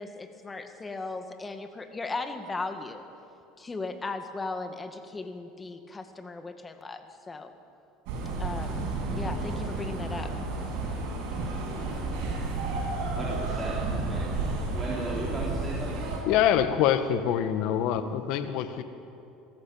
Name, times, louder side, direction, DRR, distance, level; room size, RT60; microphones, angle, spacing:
voice 1, 0.0-3.0 3.6-7.5 8.4-8.9 9.1-10.3, left 3 dB, 20° left, 7 dB, 2.1 m, -37 dB
sound 1, 8.1-16.2, right 3 dB, 70° right, 7.5 m, -31 dB
voice 2, 13.2-13.8 14.1-16.2, right 1 dB, 20° right, -5 dB, 4.4 m, -37 dB
voice 3, 16.3-18.8, left 10 dB, 65° left, 10 dB, 1.6 m, -25 dB
23.0 x 14.5 x 9.1 m, 2.7 s
supercardioid pair, 90°, 0 cm